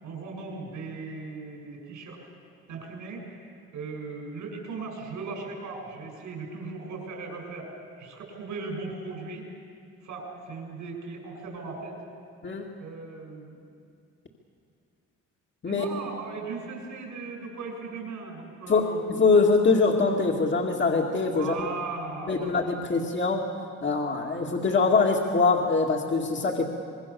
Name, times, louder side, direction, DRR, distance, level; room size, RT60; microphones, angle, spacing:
voice 1, 0.0-2.2 2.7-7.7 8.0-9.5 10.0-12.0 12.8-13.6 15.6-19.0 21.3-23.0, right 4 dB, 80° right, 1 dB, 6.5 m, -38 dB
voice 2, 18.7-21.7 22.3-23.4 23.8-26.6, left 4 dB, 40° left, 1 dB, 2.3 m, -23 dB
25.5 x 21.0 x 7.0 m, 2.4 s
cardioid pair, 90°, 30 cm